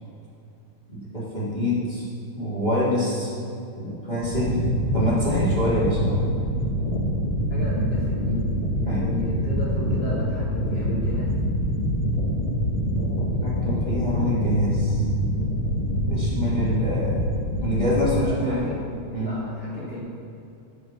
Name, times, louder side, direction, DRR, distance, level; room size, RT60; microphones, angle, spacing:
voice 1, 0.9-2.1 2.3-3.3 3.7-4.6 4.9-6.2 8.9-9.1 13.4-15.0 16.0-17.2 17.6-18.7 19.1-19.3, left 1 dB, 15° left, -8 dB, 2.4 m, -25 dB
sound 1, 4.2-18.1, equal, 55° left, 1.7 m, -25 dB
voice 2, 7.5-8.5 8.8-11.3 18.1-18.9 19.2-20.0, left 1 dB, 5° right, -8 dB, 1.8 m, -34 dB
13.0 x 6.4 x 6.0 m, 2.6 s
omnidirectional pair, 3.8 m